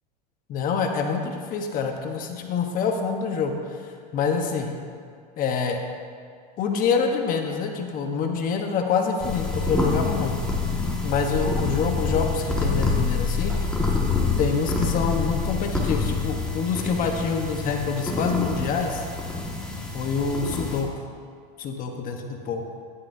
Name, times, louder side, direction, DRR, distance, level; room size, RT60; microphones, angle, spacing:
voice 1, 0.5-4.7 5.4-5.8 6.6-10.4 11.0-13.7 14.4-19.1 19.9-20.9 21.6-22.6, left 5 dB, 40° left, 3 dB, 1.1 m, -26 dB
sound 1, 9.2-20.8, left 3 dB, 5° left, 1.7 m, -27 dB
12.5 x 11.0 x 2.7 m, 2.3 s
supercardioid pair, 120°, 21 cm